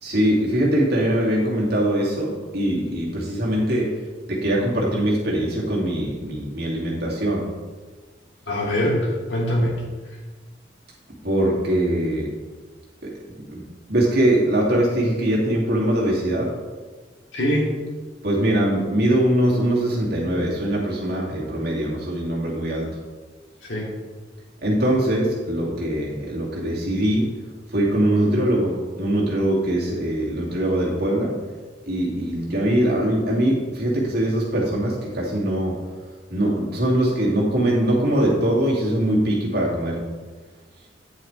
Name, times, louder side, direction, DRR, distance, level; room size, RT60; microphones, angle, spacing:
voice 1, 0.0-3.9 4.3-7.4 11.2-12.3 13.5-13.6 13.9-16.5 18.2-22.9 24.6-27.3 27.7-31.3 31.9-35.7 36.3-40.0, right 1 dB, 60° right, -4 dB, 2.5 m, -22 dB
voice 2, 8.5-9.8 17.3-17.7 23.6-23.9, equal, 80° left, -3 dB, 2.8 m, -23 dB
9.6 x 8.5 x 3.3 m, 1.4 s
head